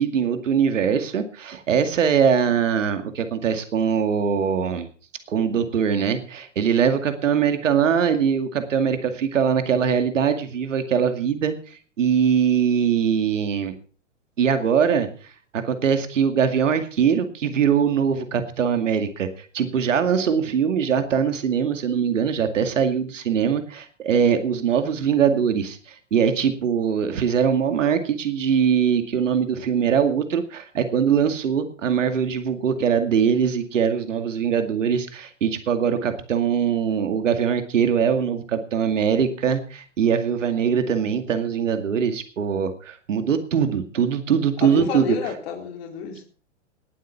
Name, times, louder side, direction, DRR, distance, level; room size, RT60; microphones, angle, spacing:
voice 1, 0.0-4.9 5.3-13.7 14.4-15.1 15.5-45.2, right 7 dB, 80° right, 2.3 m, -22 dB
voice 2, 44.6-46.2, left 8 dB, 55° left, 3.9 m, -30 dB
19.5 x 8.2 x 5.8 m
hypercardioid pair, 125°, 37 cm